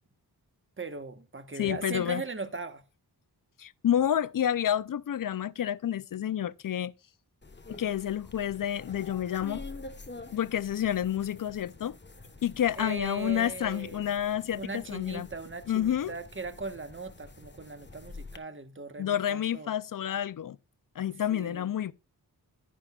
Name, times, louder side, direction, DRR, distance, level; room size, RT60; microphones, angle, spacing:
voice 1, 0.8-2.8 12.8-14.1 14.6-19.7 21.3-21.7, right 4 dB, 30° right, 1.2 m, -39 dB
voice 2, 1.6-2.2 3.6-6.9 7.7-9.6 10.3-12.0 12.4-15.3 15.7-16.1 19.0-20.6 21.0-21.9, left 10 dB, 55° left, 0.5 m, -29 dB
sound 1, 7.4-18.4, left 3 dB, 30° left, 1.2 m, -47 dB
11.5 x 10.0 x 2.4 m
wide cardioid pair, 75°, 39 cm